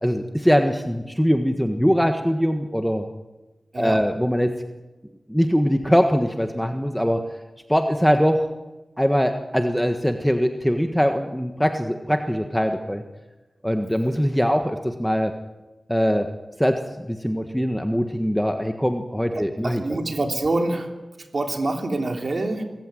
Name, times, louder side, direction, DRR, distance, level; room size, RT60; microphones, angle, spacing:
voice 1, 0.0-3.1 3.8-4.5 5.3-7.2 7.7-8.5 9.0-13.0 13.6-15.3 15.9-16.3 16.6-19.8, equal, ahead, 6 dB, 1.5 m, -22 dB
voice 2, 19.3-20.9 21.3-22.6, right 2 dB, 55° right, 4 dB, 3.3 m, -26 dB
25.5 x 15.0 x 9.2 m, 1.1 s
wide cardioid pair, 75°, 0 cm